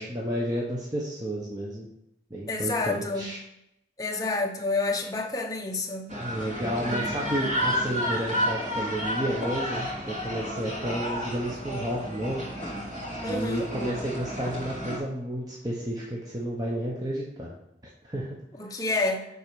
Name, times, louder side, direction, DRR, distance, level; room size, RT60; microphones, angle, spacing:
voice 1, 0.0-1.9 2.3-3.4 6.2-12.5 13.3-17.5 18.0-18.4, equal, 20° right, 1.1 m, -31 dB
voice 2, 2.5-3.3 4.0-6.1 13.2-13.7 18.6-19.2, left 3 dB, 20° left, 0.8 m, -29 dB
sound 1, 6.1-15.0, equal, 40° right, 2.7 m, -31 dB
10.0 x 4.2 x 4.7 m
head